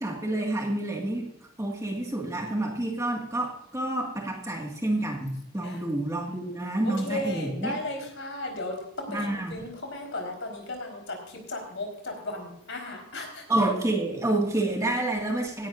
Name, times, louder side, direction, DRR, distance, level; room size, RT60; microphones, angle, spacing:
voice 1, 0.0-1.2 1.6-7.7 9.1-9.5 13.5-15.7, right 1 dB, 15° right, 0 dB, 1.9 m, -28 dB
voice 2, 6.8-13.4, left 2 dB, 55° left, 3 dB, 4.4 m, -35 dB
17.5 x 12.0 x 2.6 m, 0.79 s
head